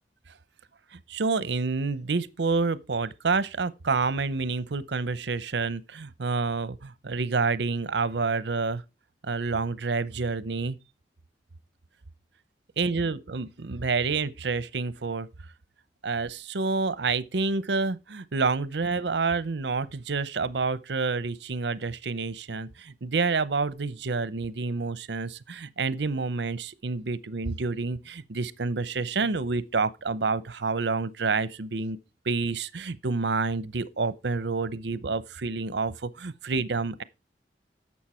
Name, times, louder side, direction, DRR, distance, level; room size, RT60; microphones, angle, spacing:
voice 1, 0.9-8.8 9.2-10.8 12.8-15.3 16.0-32.0 32.3-37.0, right 4 dB, 80° right, 0.7 m, -28 dB
11.0 x 7.2 x 4.3 m
head